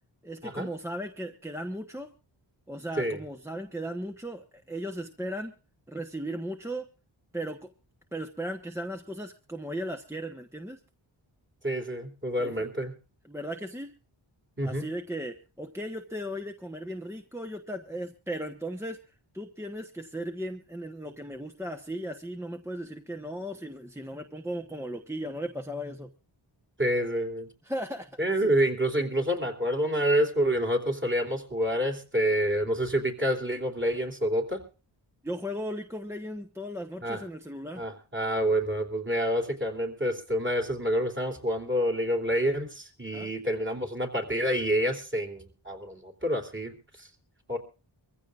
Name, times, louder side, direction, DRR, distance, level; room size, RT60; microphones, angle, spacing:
voice 1, 0.2-2.1 2.7-5.5 5.9-6.9 7.3-7.7 8.1-10.8 12.4-12.7 13.2-13.9 14.6-19.0 19.3-26.1 27.6-28.5 35.2-37.9 43.1-43.3, equal, 5° right, 4 dB, 1.1 m, -36 dB
voice 2, 11.6-12.9 14.6-14.9 26.8-27.5 28.2-34.6 37.0-37.2 37.8-46.7 47.0-47.1 47.5-47.6, equal, 25° right, 4 dB, 3.4 m, -28 dB
24.5 x 15.0 x 2.5 m, 0.34 s
wide cardioid pair, 60°, 48 cm